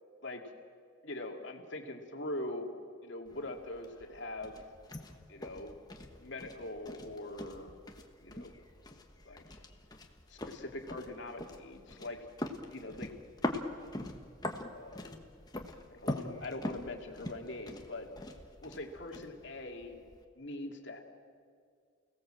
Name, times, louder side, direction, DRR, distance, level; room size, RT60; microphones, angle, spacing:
voice 1, 1.0-2.7 3.0-4.6 5.3-5.8 6.2-7.7 8.2-8.5 9.3-9.6 10.3-12.2 12.7-13.1 13.9-14.1 14.7-15.1 15.9-18.1 18.6-20.0 20.4-21.0, left 1 dB, 60° left, 3 dB, 2.5 m, -42 dB
sound 1, 3.2-20.2, left 1 dB, 20° left, 1.3 m, -43 dB
30.0 x 18.0 x 7.7 m, 2.2 s
head